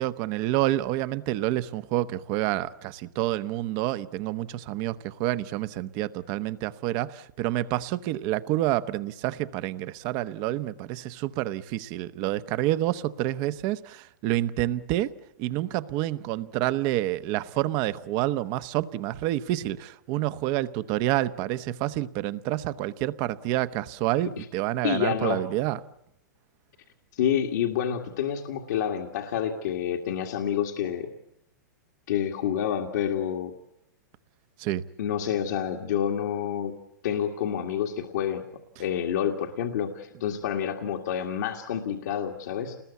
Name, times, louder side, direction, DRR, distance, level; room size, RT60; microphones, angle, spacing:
voice 1, 0.0-15.1 15.4-25.8 34.6-34.8, right 15 dB, 40° right, 1.0 m, -28 dB
voice 2, 24.8-25.4 27.1-31.1 32.1-33.5 35.0-36.8 37.0-38.4 38.8-42.8, left 9 dB, 65° left, 2.0 m, -28 dB
29.0 x 20.5 x 8.3 m
hypercardioid pair, 130°, 10 cm